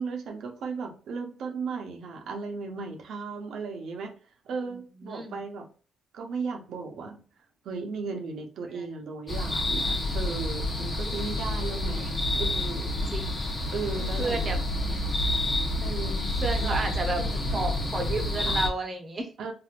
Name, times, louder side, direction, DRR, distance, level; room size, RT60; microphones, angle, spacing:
voice 1, 0.0-4.1 4.4-5.6 6.1-7.2 7.6-13.0 13.7-14.4 14.9-15.0 15.8-16.3 16.6-17.8 18.4-18.6 19.4-19.5, right 4 dB, 70° right, 3 dB, 0.8 m, -36 dB
voice 2, 5.1-5.4 8.7-8.8 11.1-11.2 13.1-13.2 14.2-14.6 16.4-17.2 17.5-19.3, right 2 dB, 35° right, 4 dB, 0.8 m, -31 dB
sound 1, 9.3-18.7, left 1 dB, 30° left, 1.0 m, -29 dB
3.4 x 2.5 x 2.4 m, 0.39 s
cardioid pair, 90°, 0 cm